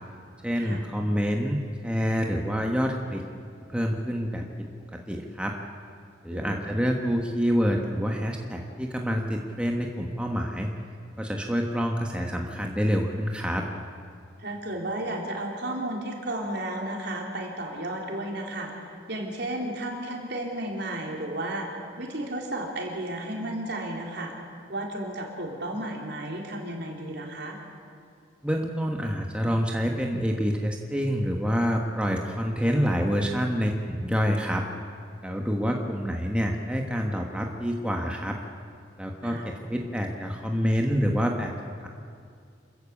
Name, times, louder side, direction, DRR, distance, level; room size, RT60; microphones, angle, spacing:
voice 1, 0.4-3.2 3.7-5.5 6.2-10.7 11.2-13.6 28.4-34.6 35.2-38.4 39.0-41.5, equal, 5° right, 1 dB, 1.3 m, -27 dB
voice 2, 6.3-6.6 14.4-18.7 19.1-24.3 24.7-27.6 39.2-39.5, right 1 dB, 60° right, 0 dB, 3.9 m, -33 dB
27.0 x 14.5 x 8.4 m, 2.3 s
head